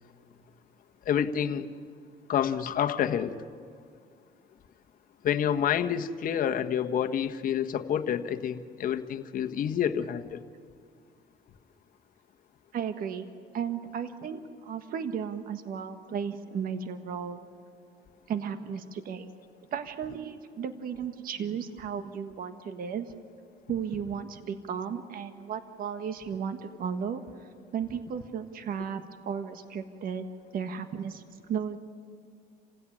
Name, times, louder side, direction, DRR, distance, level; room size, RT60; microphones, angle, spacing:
voice 1, 1.0-1.7 2.3-3.3 5.2-10.4, left 9 dB, 55° left, 7 dB, 1.4 m, -28 dB
voice 2, 12.7-13.3 13.5-17.4 18.3-19.3 19.7-23.1 23.7-30.3 30.5-31.8, right 7 dB, 60° right, 9 dB, 1.5 m, -35 dB
29.0 x 16.5 x 10.0 m, 2.3 s
cardioid pair, 110°, 17 cm